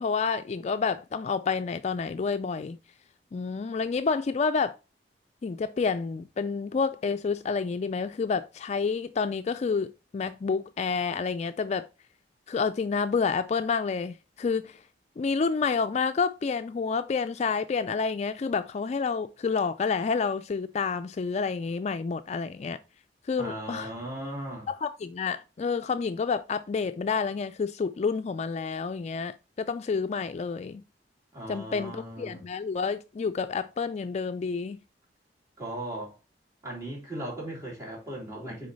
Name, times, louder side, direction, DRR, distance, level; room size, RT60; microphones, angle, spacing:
voice 1, 0.0-2.8 3.3-4.8 5.4-11.9 12.5-14.8 15.2-22.8 23.2-23.9 24.7-30.8 31.5-34.8, left 5 dB, 40° left, 0.3 m, -29 dB
voice 2, 23.4-24.7 31.3-32.4 35.6-36.2 36.6-38.7, right 1 dB, 20° right, 3.1 m, -37 dB
6.3 x 4.5 x 4.0 m
head